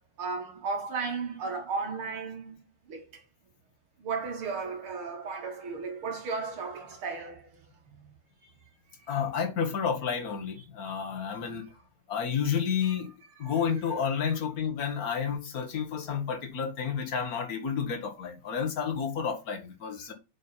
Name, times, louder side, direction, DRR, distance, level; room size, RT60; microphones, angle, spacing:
voice 1, 0.2-2.6 2.9-3.2 4.0-7.6 10.8-11.1 11.4-11.5, right 4 dB, 90° right, 2.9 m, -35 dB
voice 2, 9.1-11.7 12.1-13.1 13.4-20.1, left 7 dB, 45° left, 1.8 m, -30 dB
7.3 x 5.6 x 4.5 m
omnidirectional pair, 2.3 m